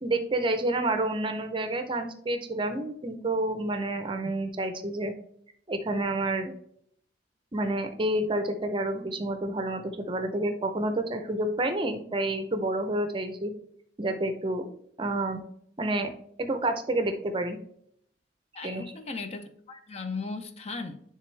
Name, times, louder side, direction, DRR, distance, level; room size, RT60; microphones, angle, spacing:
voice 1, 0.0-5.1 5.7-6.5 7.5-13.5 14.0-14.7 15.0-15.4 15.8-16.1 16.4-17.6 18.6-18.9, right 1 dB, 30° right, 8 dB, 0.6 m, -29 dB
voice 2, 18.5-21.1, left 3 dB, 35° left, 7 dB, 0.6 m, -37 dB
10.0 x 3.5 x 3.2 m, 0.69 s
head